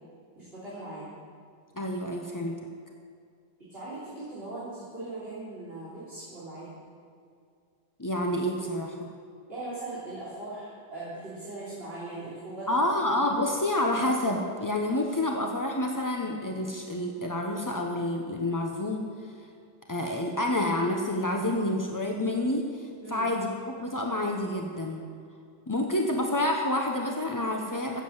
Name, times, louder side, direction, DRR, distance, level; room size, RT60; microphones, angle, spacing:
voice 1, 0.4-1.1 3.6-6.8 9.5-12.8 23.0-23.3, right 2 dB, 30° right, -10 dB, 3.6 m, -39 dB
voice 2, 1.7-2.6 8.0-9.1 12.7-19.0 19.9-25.0 25.7-28.0, left 1 dB, 25° left, 1 dB, 0.4 m, -28 dB
15.5 x 7.5 x 8.0 m, 2.3 s
omnidirectional pair, 2.0 m